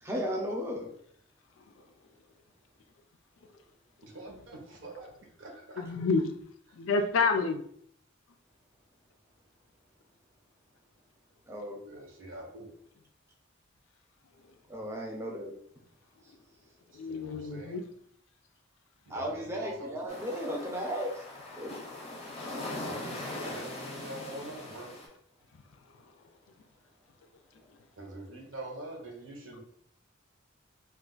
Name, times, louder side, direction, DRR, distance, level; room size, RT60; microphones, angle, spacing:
voice 1, 0.0-0.9 11.5-11.8 14.7-15.5 19.1-21.1 21.5-21.8, equal, 15° right, -1 dB, 0.6 m, -35 dB
voice 2, 4.0-5.1 5.4-5.8 11.8-12.7 16.9-17.8 19.1-20.2 22.8-24.9 28.0-29.6, right 1 dB, 70° right, 0 dB, 0.9 m, -44 dB
voice 3, 5.8-6.3 6.7-7.6 16.9-17.8, left 4 dB, 70° left, 7 dB, 0.4 m, -28 dB
sound 1, 20.1-25.1, left 2 dB, 30° left, 0.6 m, -40 dB
2.4 x 2.4 x 3.8 m, 0.65 s
head